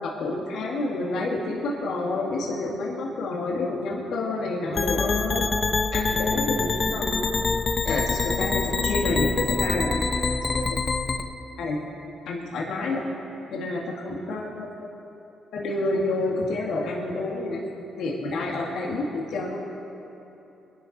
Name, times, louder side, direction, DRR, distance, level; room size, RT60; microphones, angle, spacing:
voice 1, 0.0-5.4 5.9-7.3 7.8-10.0 10.4-10.7 11.6-11.9 12.3-13.0 13.5-14.7 15.5-17.6 18.0-19.6, left 2 dB, 75° left, -3 dB, 2.0 m, -28 dB
sound 1, 4.8-11.2, left 4 dB, 35° left, 0.9 m, -25 dB
22.5 x 11.5 x 4.2 m, 2.9 s
cardioid pair, 90°, 0 cm